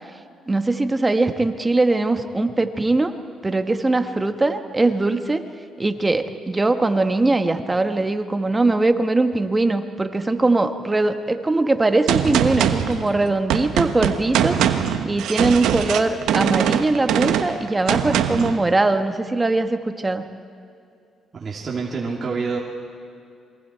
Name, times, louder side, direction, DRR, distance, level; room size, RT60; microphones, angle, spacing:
voice 1, 0.5-3.1 3.4-5.4 5.8-14.6 15.0-20.2, right 2 dB, 20° right, 7 dB, 1.4 m, -21 dB
Gunshot gunfire, 12.1-18.6, right 9 dB, 85° right, 1.1 m, -22 dB
voice 2, 21.3-22.6, right 4 dB, 40° right, -3 dB, 2.8 m, -27 dB
28.0 x 22.5 x 4.6 m, 2.5 s
cardioid pair, 90°, 0 cm